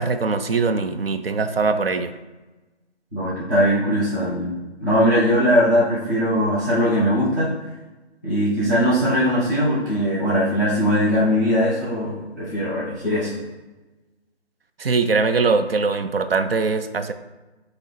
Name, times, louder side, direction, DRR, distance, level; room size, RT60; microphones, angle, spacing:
voice 1, 0.0-2.1 14.8-17.1, right 4 dB, 60° right, 9 dB, 0.4 m, -21 dB
voice 2, 3.1-4.5 4.8-7.6 8.2-13.3, equal, 15° right, -11 dB, 0.9 m, -20 dB
5.1 x 2.9 x 3.2 m, 1.1 s
figure-of-eight pair, 160°, 33 cm